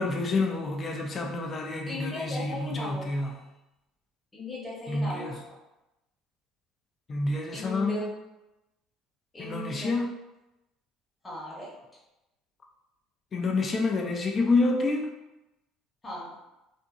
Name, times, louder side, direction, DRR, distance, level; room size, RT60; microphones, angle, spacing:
voice 1, 0.0-3.3 4.9-5.3 7.1-8.1 9.4-10.1 13.3-15.1, left 3 dB, 40° left, 2 dB, 0.5 m, -28 dB
voice 2, 1.9-3.3 4.3-5.4 7.5-8.1 9.3-9.9 11.2-11.7 16.0-16.4, left 1 dB, 20° left, -6 dB, 1.0 m, -37 dB
2.6 x 2.6 x 2.4 m, 0.94 s
hypercardioid pair, 70°, 0 cm